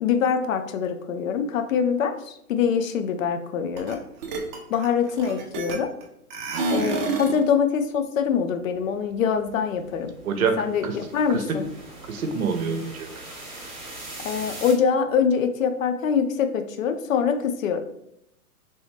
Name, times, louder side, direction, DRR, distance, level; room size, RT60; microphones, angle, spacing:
voice 1, 0.0-4.0 4.7-5.9 6.7-10.1 10.6-11.6 14.2-17.8, left 7 dB, 60° left, 7 dB, 0.5 m, -24 dB
sound 1, 3.8-3.9 4.2-6.0 6.3-7.4, right 3 dB, 30° right, 0.5 m, -28 dB
sound 2, 8.7-14.7, right 2 dB, 15° right, 0.9 m, -42 dB
voice 2, 10.2-11.0 11.3-11.6 12.1-13.1, right 5 dB, 65° right, 6 dB, 0.7 m, -26 dB
3.0 x 3.0 x 3.0 m, 0.79 s
hypercardioid pair, 120°, 46 cm